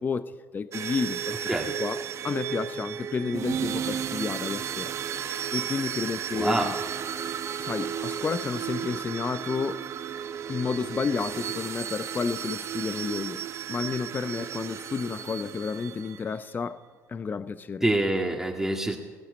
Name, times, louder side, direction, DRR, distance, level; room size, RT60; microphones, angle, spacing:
voice 1, 0.0-1.4 1.8-4.9 5.5-6.7 7.6-9.8 10.5-13.4 13.7-16.8 17.1-17.8, left 5 dB, 30° left, 0.8 m, -31 dB
sound 1, 0.7-16.3, right 8 dB, 50° right, 1.1 m, -34 dB
voice 2, 6.4-6.7 17.8-19.0, right 1 dB, 5° right, 2.0 m, -25 dB
20.5 x 15.0 x 8.6 m
cardioid pair, 110°, 6 cm